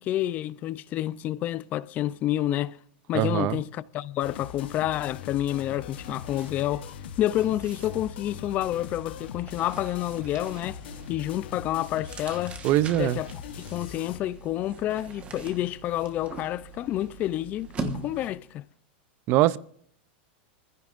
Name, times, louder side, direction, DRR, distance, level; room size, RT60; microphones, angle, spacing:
voice 1, 0.0-2.8 3.1-6.9 7.2-10.8 11.1-12.6 12.9-13.3 13.7-18.6, left 13 dB, 30° left, 0.5 m, -29 dB
voice 2, 3.1-3.6 12.6-13.2 19.3-19.6, right 15 dB, 35° right, 0.5 m, -22 dB
sound 1, 4.2-14.2, left 10 dB, 75° left, 1.0 m, -41 dB
sound 2, 4.6-4.8 5.1-18.5, right 4 dB, 20° right, 1.2 m, -43 dB
25.5 x 15.5 x 2.5 m
supercardioid pair, 160°, 6 cm